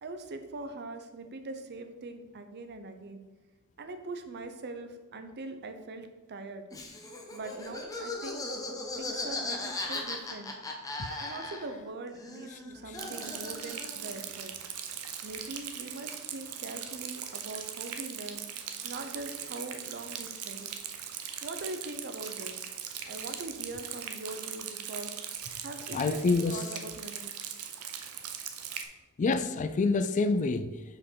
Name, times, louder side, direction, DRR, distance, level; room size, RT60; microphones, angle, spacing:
voice 1, 0.0-3.2 3.8-6.7 7.3-8.5 9.0-10.5 11.2-14.5 15.2-18.4 18.8-20.8 21.4-22.7 23.0-25.1 25.6-27.3, right 2 dB, 50° right, 0.7 m, -42 dB
Laughter, 6.7-11.9 12.1-14.1, left 2 dB, 15° left, 0.8 m, -38 dB
Rain, 13.0-28.9, right 8 dB, 90° right, 0.7 m, -40 dB
voice 2, 25.9-26.6 29.2-30.7, left 3 dB, 35° left, 0.3 m, -27 dB
5.3 x 4.4 x 5.6 m
head